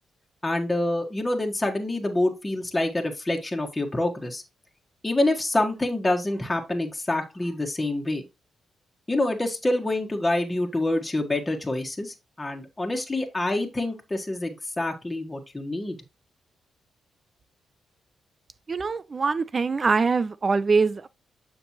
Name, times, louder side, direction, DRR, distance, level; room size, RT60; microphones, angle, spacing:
voice 1, 0.4-4.4 5.0-8.2 9.1-16.0, left 1 dB, 20° left, 1.7 m, -26 dB
voice 2, 18.7-21.1, right 4 dB, 40° right, 0.6 m, -23 dB
6.9 x 5.2 x 2.9 m
supercardioid pair, 55°, 0 cm